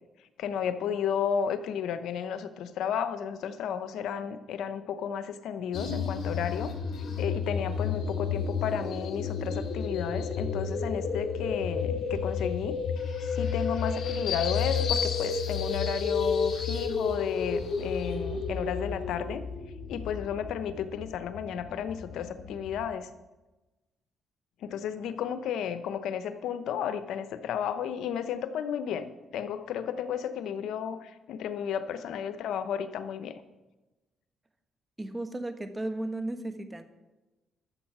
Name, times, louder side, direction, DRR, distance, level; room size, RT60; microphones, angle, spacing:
voice 1, 0.4-6.7 7.2-12.8 13.3-19.4 19.9-23.1 24.6-33.4, left 8 dB, 80° left, 11 dB, 0.8 m, -33 dB
sound 1, 5.7-22.9, left 5 dB, 60° left, 2.6 m, -31 dB
voice 2, 35.0-36.8, right 2 dB, 20° right, 9 dB, 1.2 m, -34 dB
13.0 x 7.2 x 6.0 m, 1.1 s
cardioid pair, 90°, 0 cm